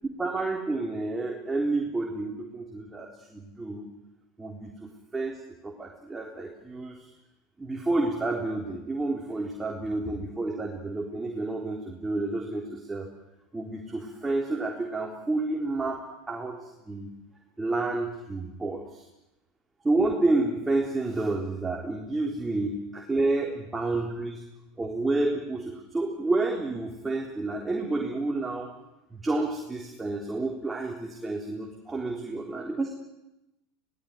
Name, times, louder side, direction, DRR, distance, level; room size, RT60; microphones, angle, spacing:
voice 1, 0.2-3.9 4.4-7.1 7.6-13.1 13.5-17.1 17.6-19.0 19.8-24.4 24.8-28.7 29.1-32.9, right 2 dB, 15° right, 0 dB, 3.8 m, -30 dB
22.0 x 18.5 x 9.8 m, 0.96 s
hypercardioid pair, 90°, 0 cm